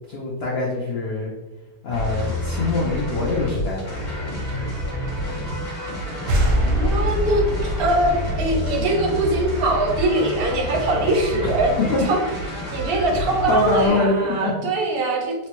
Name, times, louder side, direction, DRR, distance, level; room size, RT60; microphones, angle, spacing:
voice 1, 0.1-1.3 1.8-4.2 11.4-11.6 11.9-12.1 13.5-14.1 14.4-14.5, left 2 dB, 85° left, -3 dB, 0.5 m, -24 dB
sound 1, 1.9-13.9, left 1 dB, 30° left, 1.0 m, -29 dB
sound 2, 6.3-9.8, right 1 dB, 85° right, 1.4 m, -24 dB
voice 2, 6.6-12.2 12.7-15.3, right 2 dB, 55° right, 0 dB, 0.6 m, -22 dB
4.2 x 2.1 x 2.9 m, 1.1 s
omnidirectional pair, 1.8 m